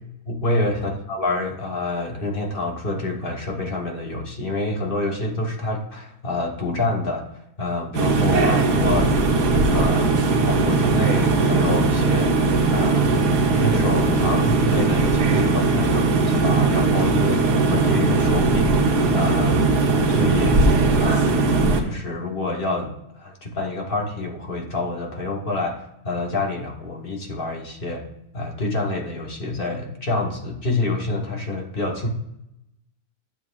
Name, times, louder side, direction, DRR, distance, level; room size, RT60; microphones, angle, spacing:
voice 1, 0.3-7.3 7.6-9.1 9.5-12.4 12.7-16.0 16.3-20.7 20.9-21.4 21.8-25.8 26.0-28.1 28.3-32.1, left 2 dB, 40° left, 1 dB, 1.2 m, -27 dB
sound 1, 7.9-21.8, right 3 dB, 85° right, 1.6 m, -19 dB
12.0 x 7.4 x 2.4 m, 0.82 s
omnidirectional pair, 1.7 m